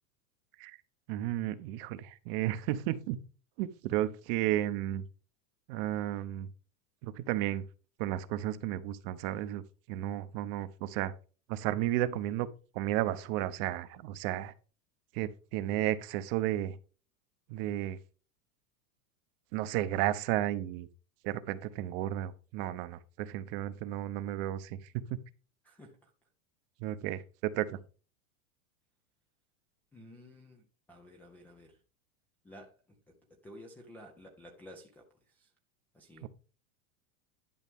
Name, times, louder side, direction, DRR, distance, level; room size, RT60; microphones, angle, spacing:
voice 1, 1.1-3.2 3.6-5.1 5.7-6.5 7.0-7.6 8.0-9.6 9.9-11.1 11.5-12.5 12.7-14.5 15.1-16.8 17.5-18.0 19.5-20.9 21.2-25.2 26.8-27.8 36.2-36.3, right 13 dB, 40° right, 0.7 m, -33 dB
voice 2, 25.6-26.1 29.9-31.8 32.4-35.5 35.9-36.3, left 1 dB, 5° left, 0.3 m, -53 dB
11.0 x 5.6 x 3.5 m
supercardioid pair, 160°, 43 cm